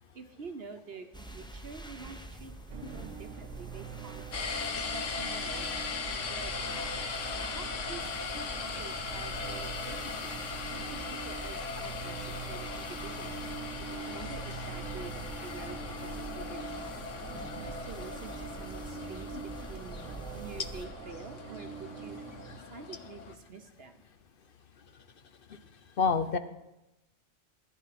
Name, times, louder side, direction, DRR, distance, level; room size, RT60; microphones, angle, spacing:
voice 1, 0.0-4.3 4.9-5.8 6.3-6.9 7.5-10.4 10.7-13.4 14.0-17.0 17.6-20.0 20.3-22.4 22.7-24.0, right 5 dB, 55° right, 7 dB, 1.1 m, -47 dB
sound 1, 1.1-20.9, right 1 dB, 5° left, 0.7 m, -46 dB
sound 2, 2.7-22.6, right 9 dB, 80° right, 1.0 m, -45 dB
sound 3, 4.3-23.3, left 5 dB, 80° left, 1.4 m, -39 dB
voice 2, 26.0-26.4, left 5 dB, 55° left, 11 dB, 0.8 m, -28 dB
14.0 x 9.5 x 5.9 m, 0.95 s
omnidirectional pair, 1.2 m